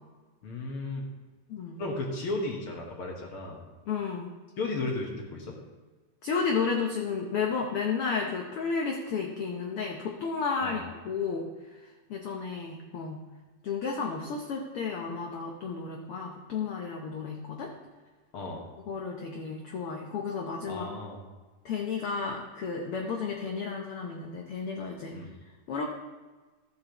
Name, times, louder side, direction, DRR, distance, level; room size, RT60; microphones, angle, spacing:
voice 1, 0.4-1.1 1.8-3.6 4.6-5.6 10.6-10.8 18.3-18.6 20.7-21.2 25.1-25.3, left 2 dB, 55° left, 0 dB, 1.6 m, -34 dB
voice 2, 3.9-4.3 6.2-11.5 12.1-13.2 13.6-17.7 18.9-20.8 21.6-25.2 25.7-25.8, left 5 dB, 85° left, 1 dB, 1.2 m, -32 dB
13.5 x 7.7 x 2.9 m, 1.3 s
omnidirectional pair, 3.7 m